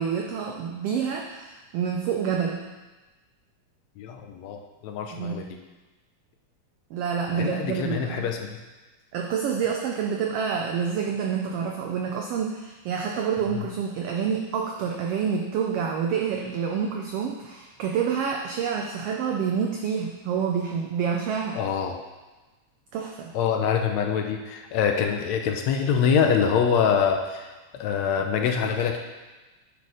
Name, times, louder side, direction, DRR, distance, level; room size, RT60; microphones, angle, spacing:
voice 1, 0.0-2.6 5.1-5.5 6.9-8.3 9.1-21.6 22.9-23.3, right 7 dB, 85° right, 1 dB, 1.3 m, -28 dB
voice 2, 4.0-5.6 7.3-8.6 13.5-13.6 21.6-22.0 23.3-27.5 27.8-29.0, left 7 dB, 80° left, 4 dB, 1.8 m, -25 dB
9.3 x 4.1 x 4.9 m, 1.2 s
omnidirectional pair, 3.3 m